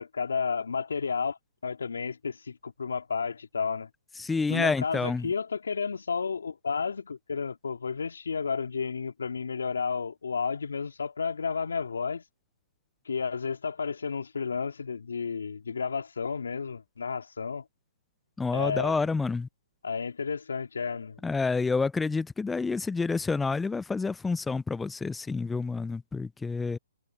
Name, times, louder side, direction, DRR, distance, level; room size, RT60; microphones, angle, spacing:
voice 1, 0.0-1.4 1.6-3.9 4.5-12.2 13.0-17.7 18.5-19.1 19.8-21.2, left 5 dB, 75° left, 2.6 m, -32 dB
voice 2, 4.2-5.3 18.4-19.5 21.2-26.8, left 4 dB, 5° left, 0.4 m, -28 dB
hypercardioid pair, 135°, 0 cm